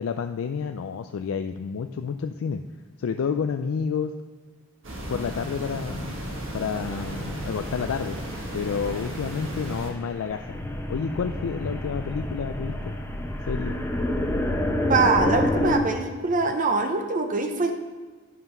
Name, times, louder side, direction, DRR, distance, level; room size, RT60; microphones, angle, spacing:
voice 1, 0.0-2.6 3.0-4.1 5.1-6.2 6.5-8.2 8.5-10.6 10.9-12.9 13.5-13.8, left 6 dB, 75° left, 7 dB, 0.4 m, -29 dB
sound 1, 4.8-9.9, right 1 dB, 65° right, 1.6 m, -34 dB
sound 2, 6.8-15.8, left 1 dB, 10° left, 0.9 m, -29 dB
voice 2, 14.9-17.7, right 3 dB, 40° right, 5 dB, 0.6 m, -23 dB
9.6 x 5.8 x 5.5 m, 1.4 s
head